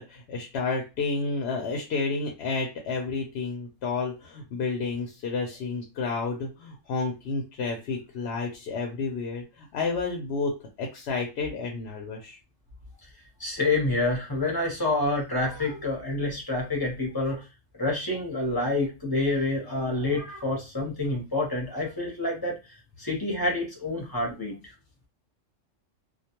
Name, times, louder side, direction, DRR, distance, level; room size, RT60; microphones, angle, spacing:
voice 1, 0.0-12.4, left 4 dB, 65° left, 2 dB, 0.8 m, -31 dB
voice 2, 13.4-17.4 17.8-22.6 23.0-24.5, left 2 dB, 20° left, -1 dB, 0.7 m, -27 dB
2.3 x 2.2 x 2.8 m, 0.28 s
omnidirectional pair, 1.3 m